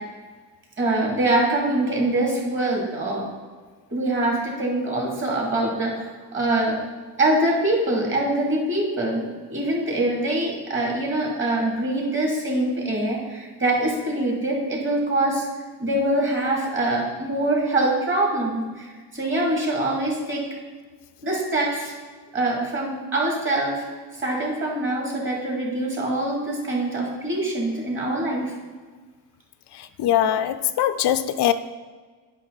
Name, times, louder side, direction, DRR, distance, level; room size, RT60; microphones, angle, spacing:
voice 1, 0.8-3.3 3.9-6.1 6.3-6.8 7.2-15.5 15.8-20.4 21.2-21.9 22.3-23.8 24.2-28.5, right 1 dB, 30° right, -2 dB, 2.5 m, -24 dB
voice 2, 30.0-31.5, left 11 dB, 70° left, 11 dB, 0.5 m, -21 dB
9.0 x 5.9 x 4.0 m, 1.4 s
cardioid pair, 115°, 41 cm